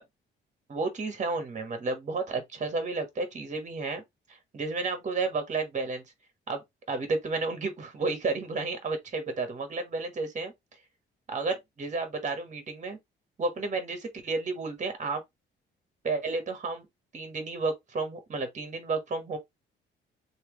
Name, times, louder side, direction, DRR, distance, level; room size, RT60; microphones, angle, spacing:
voice 1, 0.7-4.0 4.3-6.0 6.5-6.6 6.9-10.5 11.3-13.0 13.4-15.2 16.0-16.9 17.1-19.4, right 3 dB, 35° right, 1.3 m, -32 dB
3.3 x 2.8 x 3.0 m
cardioid pair, 90°, 20 cm